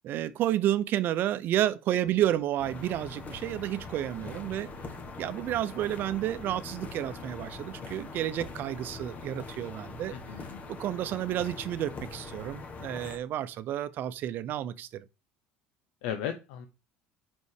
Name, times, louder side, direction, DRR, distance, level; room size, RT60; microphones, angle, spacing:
voice 1, 0.0-4.7 5.2-10.1 10.7-15.0, right 12 dB, 55° right, 0.7 m, -31 dB
sound 1, 2.6-13.2, left 3 dB, 40° left, 1.6 m, -42 dB
voice 2, 10.1-10.6 16.0-16.7, left 9 dB, 80° left, 0.9 m, -36 dB
5.6 x 5.4 x 4.7 m
supercardioid pair, 90°, 4 cm